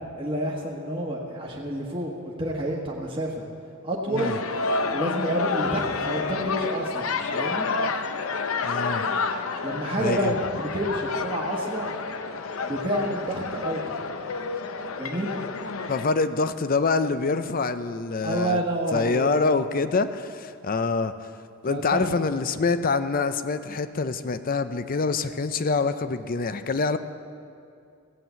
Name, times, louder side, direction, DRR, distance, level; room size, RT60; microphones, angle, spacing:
voice 1, 0.2-2.1 2.4-3.4 3.8-4.4 4.9-7.7 9.6-11.9 12.6-14.0 15.0-15.4 18.2-19.7 21.7-22.1, right 1 dB, 25° right, -2 dB, 1.3 m, -29 dB
sound 1, 4.2-16.1, left 4 dB, 85° left, 0.7 m, -29 dB
voice 2, 8.6-9.1 10.0-10.3 15.9-18.6 18.9-21.1 21.6-27.0, left 4 dB, 45° left, 11 dB, 0.5 m, -25 dB
15.5 x 7.5 x 8.1 m, 2.4 s
head